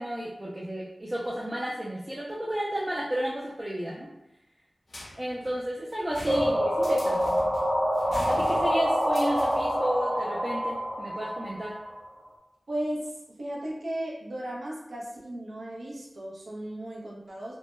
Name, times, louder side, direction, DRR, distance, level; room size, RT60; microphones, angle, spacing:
voice 1, 0.0-4.1 5.1-7.2 8.3-11.8, right 1 dB, 25° right, -4 dB, 0.4 m, -32 dB
sound 1, 4.9-9.9, left 1 dB, 60° left, 0.4 m, -42 dB
sound 2, 6.3-12.0, equal, 40° right, 0.8 m, -26 dB
voice 2, 12.7-17.6, right 1 dB, 75° right, -4 dB, 0.6 m, -35 dB
2.1 x 2.1 x 3.0 m, 0.89 s
wide cardioid pair, 65°, 0 cm